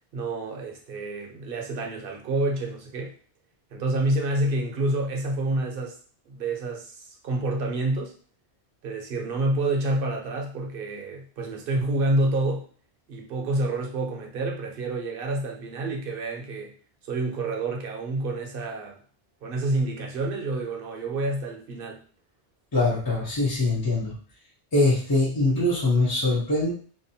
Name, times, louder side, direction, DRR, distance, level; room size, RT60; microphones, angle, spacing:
voice 1, 0.1-3.1 3.7-5.9 6.3-7.0 7.2-8.1 8.8-12.6 13.1-16.7 17.0-19.0 19.4-22.0, right 2 dB, 60° right, 1 dB, 0.8 m, -28 dB
voice 2, 22.7-24.2 24.7-26.7, left 2 dB, 30° left, -6 dB, 0.5 m, -23 dB
2.7 x 2.2 x 2.7 m, 0.41 s
omnidirectional pair, 1.1 m